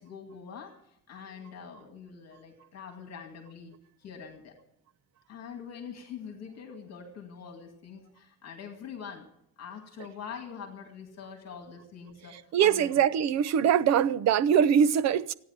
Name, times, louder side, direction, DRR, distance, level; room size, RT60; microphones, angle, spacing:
voice 1, 0.0-4.6 5.3-9.3 9.6-13.0, left 7 dB, 40° left, 2.3 m, -44 dB
voice 2, 12.5-15.3, right 8 dB, 45° right, 0.6 m, -23 dB
15.0 x 9.7 x 9.0 m
cardioid pair, 165°, 40 cm